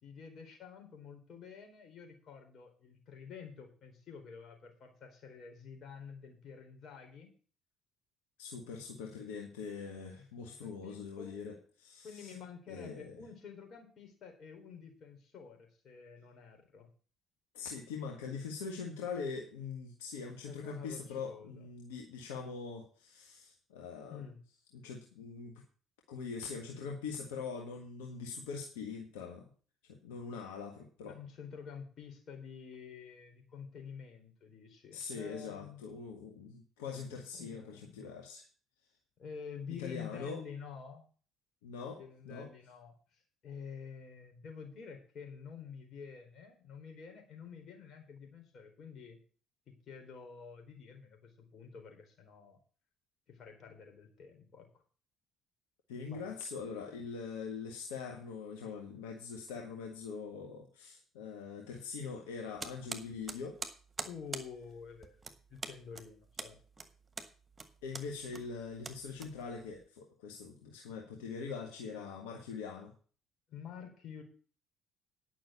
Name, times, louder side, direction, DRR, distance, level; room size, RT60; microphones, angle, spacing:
voice 1, 0.0-7.3 10.2-10.3 10.6-11.4 12.0-16.9 18.4-18.5 20.4-21.7 24.1-24.4 31.1-35.8 37.3-38.1 39.2-41.0 42.0-49.2 49.7-52.6 53.3-54.8 56.1-56.3 64.0-65.2 65.5-66.6 73.5-74.2, left 6 dB, 55° left, 3 dB, 4.2 m, -49 dB
voice 2, 8.4-12.3 12.7-13.2 17.5-24.2 24.7-25.6 26.1-29.5 29.9-31.2 34.9-38.4 39.8-40.4 41.6-42.5 55.9-63.6 67.8-72.9, left 5 dB, 80° left, 2 dB, 1.5 m, -43 dB
sound 1, 62.6-69.8, right 3 dB, 25° right, 1.8 m, -45 dB
10.0 x 6.0 x 8.2 m, 0.40 s
hypercardioid pair, 55°, 0 cm